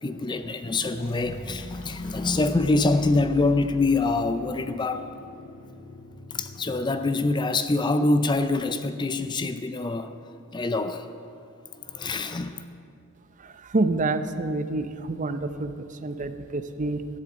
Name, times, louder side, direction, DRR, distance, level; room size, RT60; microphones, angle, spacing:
voice 1, 0.0-5.1 6.3-10.1 10.5-11.1 11.7-12.6, left 3 dB, 20° left, 0.4 m, -25 dB
sound 1, 1.0-7.6, equal, 75° left, 3.2 m, -43 dB
voice 2, 13.4-17.1, right 2 dB, 35° right, 0.6 m, -28 dB
12.5 x 10.5 x 7.7 m
head